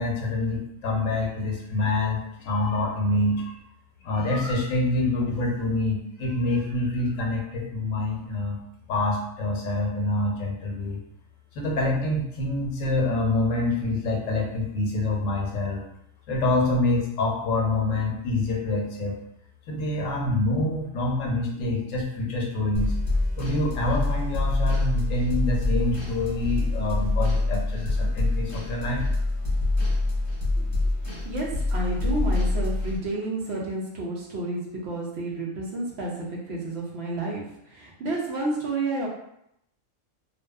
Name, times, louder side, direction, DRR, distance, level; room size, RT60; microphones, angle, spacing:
voice 1, 0.0-3.6 4.0-8.6 8.9-11.0 11.5-15.8 16.3-19.2 19.7-22.9 23.4-29.0, left 2 dB, 90° left, -1 dB, 1.0 m, -26 dB
sound 1, 22.7-33.0, left 2 dB, 40° left, 0.9 m, -26 dB
voice 2, 31.2-39.1, right 2 dB, 65° right, -3 dB, 0.8 m, -30 dB
2.6 x 2.2 x 2.2 m, 0.77 s
omnidirectional pair, 1.3 m